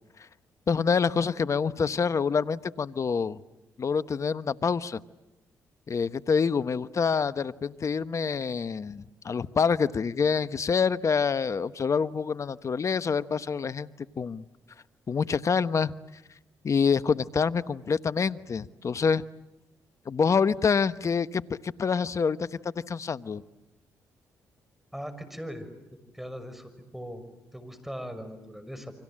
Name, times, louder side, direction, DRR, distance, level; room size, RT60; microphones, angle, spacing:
voice 1, 0.7-3.4 3.8-5.0 5.9-14.4 15.1-15.9 16.6-19.2 20.1-23.4, left 5 dB, 45° left, 14 dB, 1.0 m, -26 dB
voice 2, 24.9-25.7 26.1-27.2 27.5-28.9, equal, 5° right, 10 dB, 6.1 m, -39 dB
30.0 x 25.0 x 7.6 m, 0.93 s
supercardioid pair, 55°, 7 cm